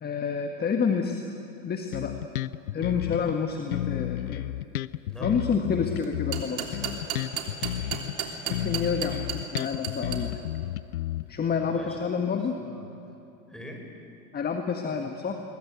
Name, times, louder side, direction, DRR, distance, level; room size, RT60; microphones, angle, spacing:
voice 1, 0.0-1.2 1.6-2.2 2.7-4.4 5.2-6.8 8.6-10.4 11.3-12.6 14.3-15.4, left 6 dB, 20° left, 5 dB, 1.7 m, -29 dB
Bass guitar, 1.9-3.4 3.7-8.2 8.5-11.5, left 13 dB, 85° left, 0.7 m, -32 dB
voice 2, 5.1-5.5 11.6-12.1 12.6-13.1 13.5-13.8, equal, ahead, 1 dB, 5.5 m, -44 dB
sound 1, 6.0-10.2, right 9 dB, 75° right, 3.5 m, -32 dB
22.0 x 21.5 x 9.2 m, 2.8 s
hypercardioid pair, 95°, 42 cm